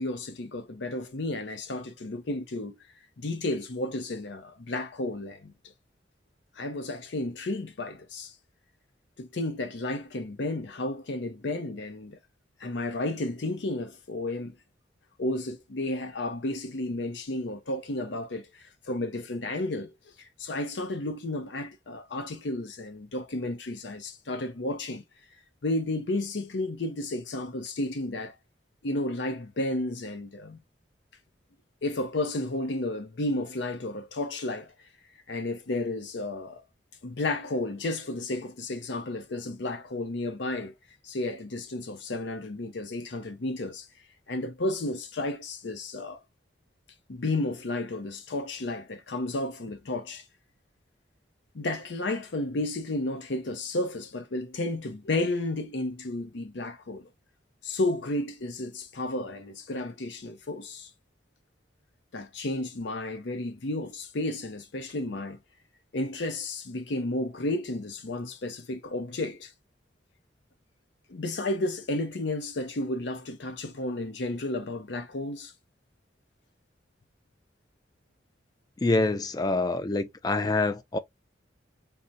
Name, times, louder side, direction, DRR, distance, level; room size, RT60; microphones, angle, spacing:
voice 1, 0.0-2.8 3.2-5.5 6.6-8.3 9.2-12.2 12.6-14.6 15.2-18.5 18.9-19.9 20.2-25.0 25.6-28.3 28.8-30.6 31.8-34.7 35.3-36.6 37.0-40.7 41.0-43.9 44.3-46.2 47.1-50.2 51.5-57.1 57.6-60.9 62.1-65.4 65.9-69.5 71.1-75.5, left 2 dB, 75° left, 0.6 m, -32 dB
voice 2, 78.8-81.0, left 2 dB, 20° left, 0.3 m, -26 dB
3.8 x 2.1 x 2.6 m
head